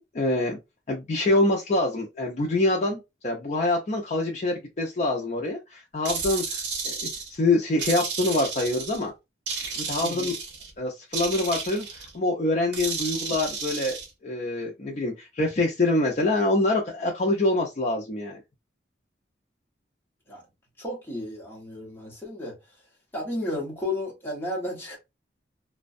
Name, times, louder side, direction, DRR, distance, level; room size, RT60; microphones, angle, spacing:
voice 1, 0.1-0.6 0.9-9.1 9.7-10.3 10.8-18.4, left 2 dB, 40° left, 0.4 m, -25 dB
sound 1, 6.1-7.4 7.8-9.0 9.5-10.7 11.1-12.1 12.7-14.1, right 5 dB, 75° right, 0.7 m, -32 dB
voice 2, 10.0-10.3 20.3-20.4 20.8-22.6 23.1-25.0, left 1 dB, 10° left, 0.8 m, -33 dB
2.5 x 2.1 x 2.4 m
head